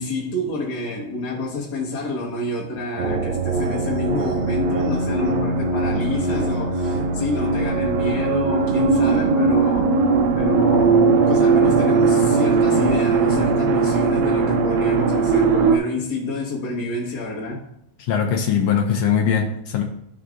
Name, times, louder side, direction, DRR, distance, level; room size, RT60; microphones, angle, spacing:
voice 1, 0.0-9.9 10.3-17.6, left 2 dB, 70° left, 0.9 m, -28 dB
sound 1, 3.0-15.8, right 4 dB, 80° right, 1.7 m, -19 dB
voice 2, 18.0-19.8, left 7 dB, 85° left, 1.4 m, -21 dB
14.0 x 4.7 x 2.5 m
omnidirectional pair, 3.9 m